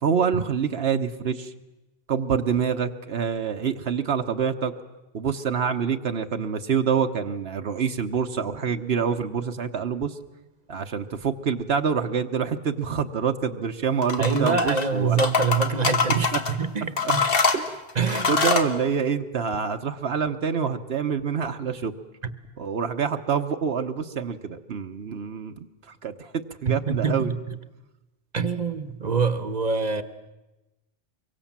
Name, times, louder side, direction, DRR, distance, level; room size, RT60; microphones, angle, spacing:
voice 1, 0.0-1.5 2.1-4.7 5.1-10.2 10.7-15.2 16.3-16.4 17.0-17.1 17.5-17.8 18.3-21.9 22.6-25.5 25.9-26.3 26.6-27.3, right 6 dB, 80° right, 6 dB, 1.3 m, -26 dB
sound 1, 14.0-14.9 15.2-16.5 17.0-18.7, left 5 dB, 65° left, 1.7 m, -24 dB
voice 2, 14.2-17.2 18.0-18.3 22.2-22.3 26.7-27.6 28.3-30.0, right 5 dB, 45° right, 13 dB, 1.1 m, -25 dB
24.5 x 23.0 x 7.4 m, 1.0 s
omnidirectional pair, 1.0 m